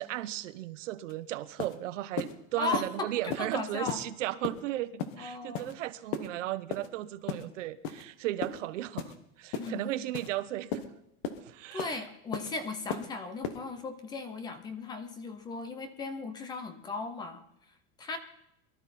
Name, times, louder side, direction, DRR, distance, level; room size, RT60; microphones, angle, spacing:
voice 1, 0.0-10.8 11.5-11.9, right 14 dB, 85° right, 14 dB, 1.0 m, -35 dB
sound 1, 1.1-1.2 1.6-1.8 2.2-2.3 2.7-2.9 3.3-3.5 3.9-4.0 4.4-4.6 5.0-5.2 5.5-5.7 6.1-6.3 6.7-6.9 7.3-7.4 7.8-8.0 8.4-8.6 9.0-9.2 9.5-9.7 10.1-10.3 10.7-10.9 11.2-11.4 11.8-12.0 12.3-12.5 12.9-13.1 13.4-13.6, left 7 dB, 45° left, 1.3 m, -35 dB
voice 2, 2.6-4.0 5.2-5.7 9.6-10.0 11.7-18.2, left 3 dB, 10° left, 10 dB, 0.5 m, -37 dB
22.5 x 12.5 x 4.2 m, 0.78 s
supercardioid pair, 180°, 36 cm